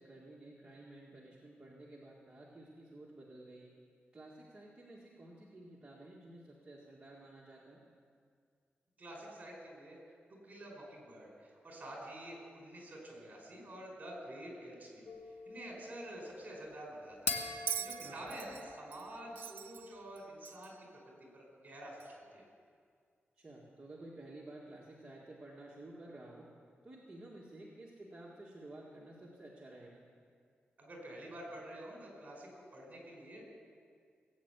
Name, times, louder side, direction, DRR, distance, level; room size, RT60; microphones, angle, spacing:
voice 1, 0.0-3.7 4.1-7.8 18.0-18.2 23.4-26.5 26.8-30.0, right 1 dB, 20° right, -5 dB, 1.8 m, -52 dB
voice 2, 9.0-10.0 10.3-15.0 15.4-22.4 30.8-33.6, right 1 dB, 40° right, -1 dB, 4.9 m, -48 dB
sound 1, 15.1-19.9, left 3 dB, 85° left, 1.5 m, -44 dB
Bell, 17.7-20.9 22.0-22.1, right 8 dB, 90° right, 0.4 m, -43 dB
18.5 x 8.8 x 8.2 m, 2.2 s
wide cardioid pair, 140°, 4 cm